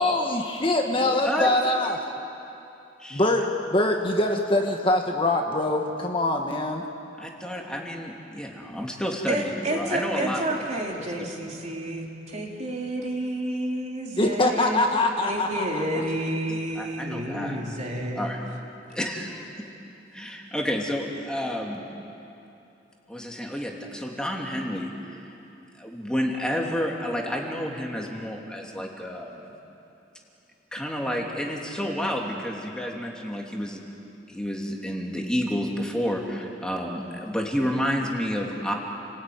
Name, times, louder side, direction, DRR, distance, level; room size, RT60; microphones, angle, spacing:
voice 1, 0.0-2.0 3.1-6.8 14.2-16.0, left 2 dB, 30° left, 2 dB, 1.6 m, -24 dB
voice 2, 1.0-1.5 3.0-3.3 7.2-10.4 11.0-11.3 16.5-18.4 18.9-19.7 20.1-21.8 23.1-24.9 25.8-29.5 30.7-33.8 34.3-38.7, equal, 5° left, -1 dB, 2.8 m, -30 dB
voice 3, 9.3-14.8 15.2-18.4, right 1 dB, 40° right, -1 dB, 3.4 m, -30 dB
29.5 x 19.5 x 9.5 m, 2.8 s
head